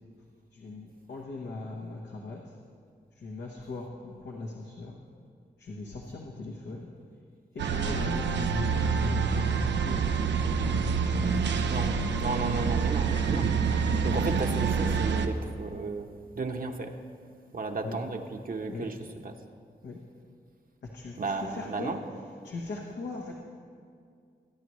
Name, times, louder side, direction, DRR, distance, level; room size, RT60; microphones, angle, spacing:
voice 1, 0.5-2.4 3.2-5.0 5.6-6.9 7.5-10.2 11.1-11.9 17.8-18.0 18.7-18.9 19.8-20.0 20.9-21.9 22.4-23.3, left 3 dB, 80° left, -2 dB, 1.1 m, -40 dB
sound 1, 7.6-15.3, right 5 dB, 90° right, 0.6 m, -27 dB
voice 2, 11.7-13.5 14.0-16.1 16.4-16.9 17.5-19.0 19.2-19.3 21.2-22.0, right 3 dB, 55° right, 4 dB, 1.0 m, -34 dB
19.0 x 9.5 x 3.1 m, 2.2 s
cardioid pair, 50°, 18 cm